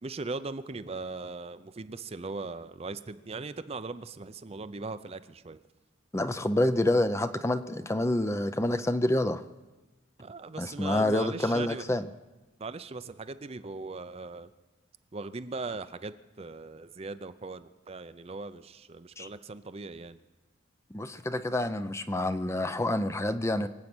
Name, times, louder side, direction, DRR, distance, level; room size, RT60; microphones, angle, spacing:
voice 1, 0.0-5.6 10.2-11.8 12.6-14.5 15.1-20.2, right 3 dB, 30° right, 0.5 m, -39 dB
voice 2, 6.1-9.4 10.6-12.0 19.2-19.3 20.9-23.7, left 1 dB, 15° left, 0.5 m, -27 dB
24.5 x 8.4 x 6.1 m
head